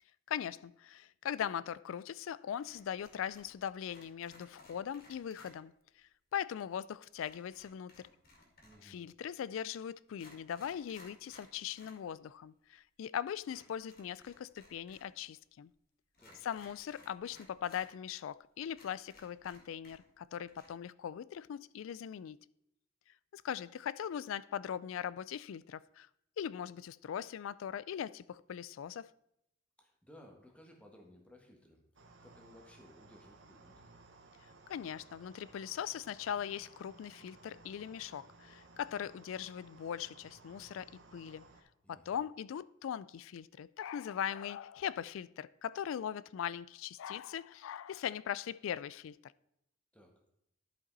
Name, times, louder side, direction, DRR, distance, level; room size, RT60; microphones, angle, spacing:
voice 1, 0.3-8.1 8.8-15.7 16.4-22.4 23.3-26.1 26.4-29.1 34.7-41.4 41.9-49.3, left 9 dB, 75° left, 0.3 m, -40 dB
sound 1, 2.6-3.6 3.8-5.5 7.2-8.9 9.6-9.7 10.1-12.0 12.3-12.4 13.4-15.1 15.4-15.5 16.1-17.9 18.3-18.4 18.7-20.2 20.5-20.7, left 2 dB, 50° left, 2.2 m, -60 dB
voice 2, 8.6-9.0 16.2-16.5 29.8-33.9 41.8-42.2 49.9-50.2, left 1 dB, 5° left, 1.3 m, -59 dB
sound 2, 31.9-41.6, right 3 dB, 60° right, 1.0 m, -59 dB
11.5 x 5.2 x 4.0 m
head